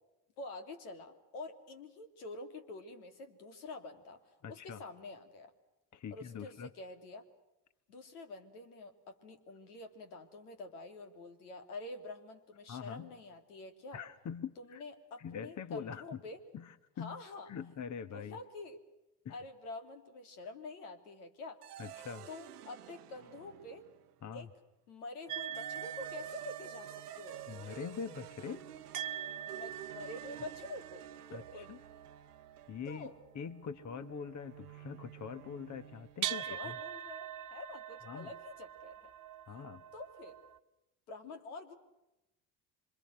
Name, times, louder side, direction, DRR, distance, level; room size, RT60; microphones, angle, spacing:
voice 1, 0.4-4.2 4.5-5.5 6.1-7.2 7.9-14.0 14.6-16.4 17.0-17.5 18.1-18.8 19.3-21.6 22.3-23.9 24.3-24.5 24.9-27.4 29.5-31.7 32.9-33.2 36.3-39.1 39.9-40.4 41.1-41.7, left 2 dB, 80° left, 6 dB, 2.9 m, -47 dB
voice 2, 4.4-4.8 5.9-6.7 12.7-13.1 13.9-14.8 15.2-16.2 16.5-17.2 17.5-18.4 19.2-19.4 21.8-22.3 24.2-24.5 27.5-28.7 31.3-31.8 32.7-36.8 38.0-38.3 39.5-39.8, left 7 dB, 40° left, 12 dB, 1.4 m, -43 dB
sound 1, 21.6-24.2 25.3-36.4, right 11 dB, 90° right, 1.0 m, -51 dB
sound 2, 25.3-33.6 35.4-35.5 35.9-40.6, right 10 dB, 40° right, 1.3 m, -44 dB
27.5 x 25.5 x 6.5 m, 0.94 s
hypercardioid pair, 60°, 45 cm